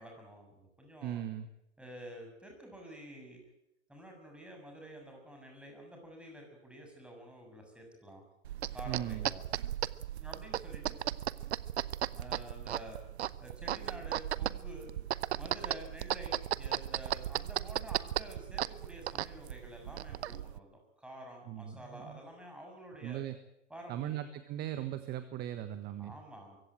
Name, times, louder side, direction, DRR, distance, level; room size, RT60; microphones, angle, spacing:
voice 1, 0.0-1.2 1.8-3.4 3.9-8.2 8.7-9.4 10.1-11.0 12.1-13.0 13.4-14.9 15.3-23.2 23.7-24.2 26.0-26.6, equal, 5° right, 2 dB, 7.1 m, -49 dB
voice 2, 1.0-1.5 8.9-9.3 21.5-22.2 23.0-23.3 23.9-26.1, right 11 dB, 25° right, 11 dB, 1.4 m, -38 dB
sound 1, 8.4-20.6, right 12 dB, 60° right, 0.9 m, -36 dB
23.0 x 16.0 x 9.0 m, 0.86 s
figure-of-eight pair, 110°, 36 cm